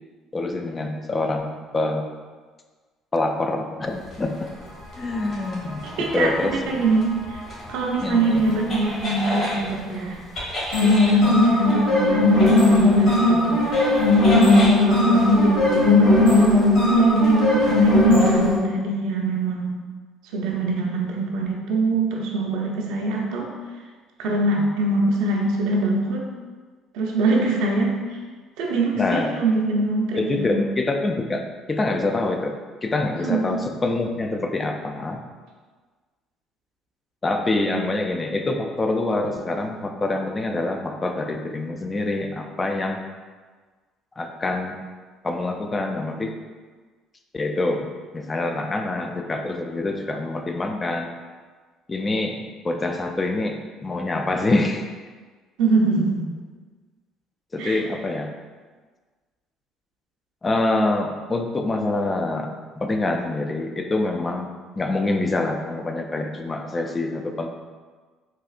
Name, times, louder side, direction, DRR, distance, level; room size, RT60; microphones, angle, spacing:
voice 1, 0.3-2.1 3.1-4.5 5.0-6.8 8.0-8.4 11.2-11.4 29.0-29.3 30.1-31.4 31.7-32.5 32.8-35.2 37.2-43.0 44.2-44.8 45.2-46.3 47.3-47.9 48.1-51.1 51.9-54.9 57.5-58.3 60.4-64.5 64.8-67.5, left 2 dB, 30° left, 4 dB, 0.4 m, -25 dB
sound 1, 5.0-9.6 10.4-18.6, left 2 dB, 55° left, 1.4 m, -18 dB
voice 2, 6.0-7.4 7.7-10.2 10.8-13.9 14.3-19.8 20.3-23.5 24.2-26.3 26.9-28.2 28.6-30.6 33.1-33.5 37.7-37.8 55.6-56.3 57.6-57.8, right 2 dB, 70° right, 0 dB, 0.5 m, -23 dB
4.1 x 2.4 x 2.4 m, 1.4 s
hypercardioid pair, 60°, 0 cm